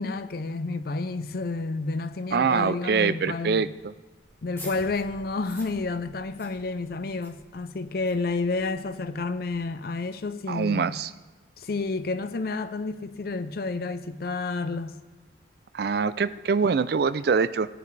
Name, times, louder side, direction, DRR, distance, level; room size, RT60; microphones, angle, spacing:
voice 1, 0.0-3.7 4.4-11.0 11.6-15.0, left 3 dB, 55° left, 0.5 m, -30 dB
voice 2, 2.3-3.9 10.5-11.1 15.7-17.7, right 5 dB, 55° right, 0.4 m, -24 dB
sound 1, 4.2-9.6, left 1 dB, 15° left, 2.8 m, -49 dB
17.0 x 9.7 x 3.3 m
head